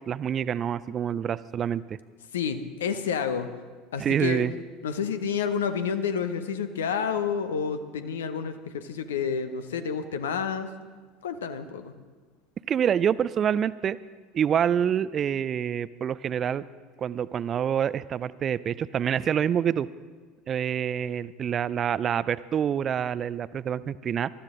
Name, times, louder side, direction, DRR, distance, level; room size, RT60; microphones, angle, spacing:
voice 1, 0.0-2.0 4.0-4.5 12.7-14.0 14.3-16.6 17.0-19.9 20.5-24.3, right 8 dB, 35° right, 18 dB, 0.4 m, -26 dB
voice 2, 2.3-3.5 3.9-10.7 11.2-11.9, left 6 dB, 70° left, 10 dB, 0.8 m, -29 dB
20.5 x 12.5 x 3.7 m, 1.4 s
figure-of-eight pair, 70°, 0 cm